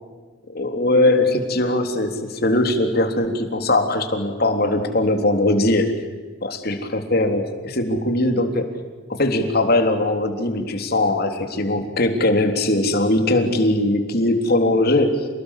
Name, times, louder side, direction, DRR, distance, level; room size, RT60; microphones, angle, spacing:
voice 1, 0.5-6.1 6.4-8.7 9.1-15.3, left 2 dB, 50° left, 5 dB, 3.6 m, -20 dB
29.0 x 20.0 x 8.5 m, 1.4 s
head